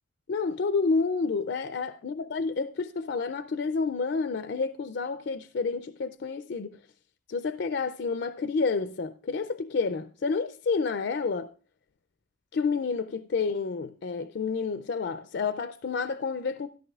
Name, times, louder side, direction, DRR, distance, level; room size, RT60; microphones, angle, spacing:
voice 1, 0.3-6.8 7.3-11.5 12.5-16.7, left 4 dB, 65° left, 0.4 m, -29 dB
14.0 x 12.5 x 2.4 m
head